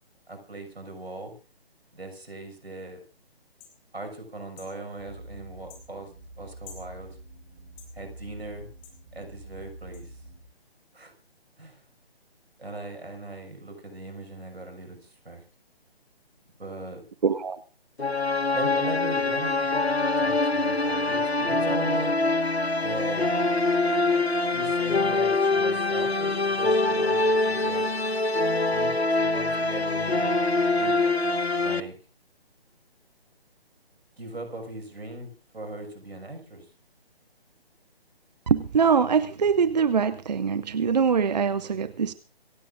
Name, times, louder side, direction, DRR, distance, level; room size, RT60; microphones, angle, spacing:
voice 1, 0.3-1.3 1.9-3.0 3.9-6.1 6.4-7.2 7.9-8.7 9.1-10.2 10.9-11.1 11.6-11.8 12.6-15.4 16.6-17.0 18.5-19.9 20.2-22.1 22.8-23.3 24.5-27.9 28.7-30.3 30.7-31.0 31.6-32.0 34.2-36.7, right 2 dB, 75° right, 5 dB, 6.2 m, -38 dB
sound 1, 3.6-3.8 4.6-4.7 5.7-5.9 6.6-6.9 7.8-7.9 8.8-9.0 9.9-10.0, left 7 dB, 20° left, 4.5 m, -48 dB
sound 2, 5.0-10.5, right 1 dB, 25° right, 6.8 m, -46 dB
voice 2, 17.2-17.6 38.5-42.1, right 6 dB, 45° right, 15 dB, 0.7 m, -23 dB
sound 3, 18.0-31.8, left 2 dB, 85° left, 1.3 m, -24 dB
26.5 x 15.0 x 2.6 m, 0.34 s
figure-of-eight pair, 145°, 31 cm